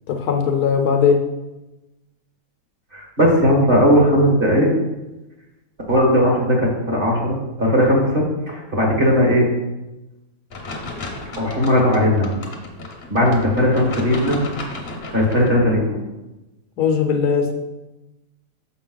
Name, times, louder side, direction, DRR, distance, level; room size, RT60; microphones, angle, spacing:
voice 1, 0.1-1.2 16.8-17.5, left 6 dB, 70° left, 4 dB, 1.2 m, -18 dB
voice 2, 2.9-4.7 5.9-9.5 11.4-12.4 13.1-14.4 15.1-16.0, equal, 30° right, -2 dB, 1.6 m, -17 dB
sound 1, 10.5-15.5, left 2 dB, 45° left, 1.0 m, -34 dB
6.8 x 5.2 x 3.9 m, 1.0 s
omnidirectional pair, 1.8 m